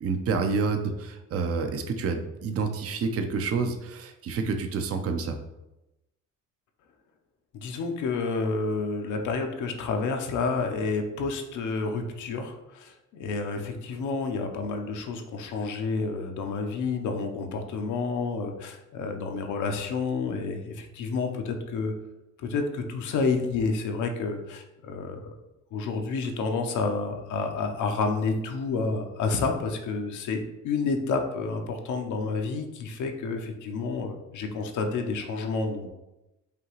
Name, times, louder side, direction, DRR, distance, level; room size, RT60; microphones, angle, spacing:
voice 1, 0.0-5.4, right 4 dB, 50° right, 6 dB, 0.6 m, -28 dB
voice 2, 7.5-21.9 22.4-25.3 25.7-35.9, left 4 dB, 80° left, 4 dB, 0.7 m, -29 dB
5.1 x 2.8 x 3.0 m, 0.94 s
cardioid pair, 90°, 30 cm